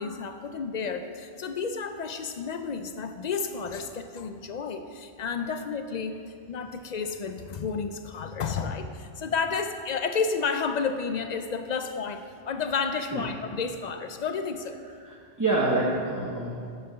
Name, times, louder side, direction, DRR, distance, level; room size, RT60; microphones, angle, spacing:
voice 1, 0.0-6.2 6.5-14.8, left 5 dB, 60° left, 8 dB, 0.4 m, -31 dB
voice 2, 14.8-16.7, right 2 dB, 20° right, -5 dB, 0.9 m, -28 dB
6.7 x 6.7 x 6.7 m, 2.3 s
omnidirectional pair, 1.2 m